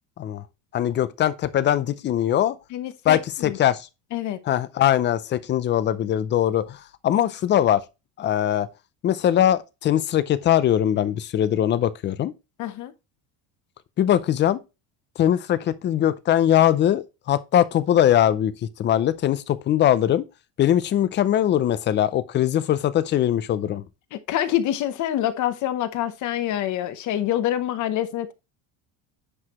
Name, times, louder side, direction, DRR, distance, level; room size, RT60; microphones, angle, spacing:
voice 1, 0.7-2.6 3.1-3.9 4.5-7.8 8.2-8.7 9.0-12.3 14.0-14.6 15.2-18.5 18.8-20.2 20.6-23.8, left 11 dB, 30° left, 0.5 m, -21 dB
voice 2, 2.7-3.6 4.1-4.4 12.6-12.9 24.1-28.3, left 12 dB, 45° left, 0.9 m, -26 dB
9.7 x 4.8 x 3.0 m
cardioid pair, 165°, 41 cm